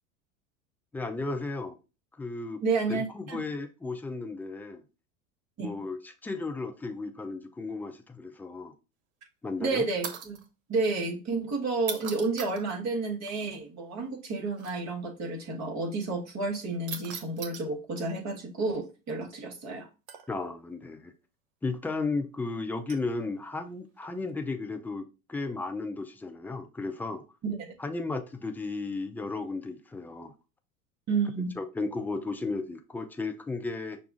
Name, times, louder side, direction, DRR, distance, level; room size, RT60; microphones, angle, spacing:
voice 1, 0.9-1.8 2.2-2.6 2.9-4.8 5.6-8.7 9.4-9.8 20.3-21.1 21.6-27.2 27.8-30.3 31.6-34.0, left 3 dB, 5° left, 0.3 m, -34 dB
voice 2, 2.6-3.4 5.6-5.7 9.6-10.4 10.7-19.9 27.4-27.7 31.1-31.5, right 3 dB, 40° right, 1.7 m, -31 dB
sound 1, 10.0-10.5 11.8-12.6 14.6-14.7 16.9-17.7 20.1-20.5 22.9-23.1 24.0-24.3, right 7 dB, 80° right, 0.9 m, -39 dB
5.9 x 2.3 x 3.7 m
hypercardioid pair, 85°, 41 cm